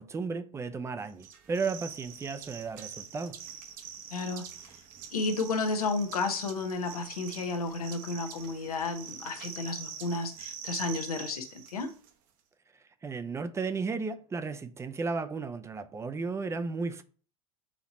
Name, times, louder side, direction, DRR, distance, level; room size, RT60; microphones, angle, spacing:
voice 1, 0.0-3.3 13.0-17.0, right 4 dB, 15° right, 0.4 m, -34 dB
sound 1, 1.2-12.1, right 8 dB, 50° right, 0.9 m, -45 dB
voice 2, 4.1-4.4 5.1-11.9, left 3 dB, 90° left, 0.8 m, -32 dB
4.3 x 2.9 x 4.1 m
hypercardioid pair, 95°, 18 cm